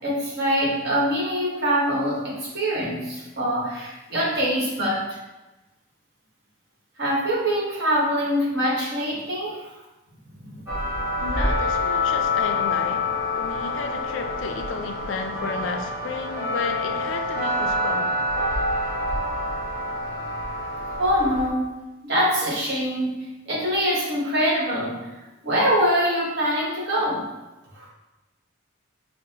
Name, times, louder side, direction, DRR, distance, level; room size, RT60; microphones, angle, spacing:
voice 1, 0.0-5.2 7.0-9.7 10.3-10.6 21.0-21.8 22.0-25.0 25.4-27.2 27.8-27.9, equal, 50° right, 1.1 m, -24 dB
sound 1, 10.7-21.5, left 2 dB, 10° right, 0.9 m, -26 dB
voice 2, 11.2-18.1, left 4 dB, 65° left, 0.3 m, -32 dB
5.3 x 2.0 x 2.8 m
head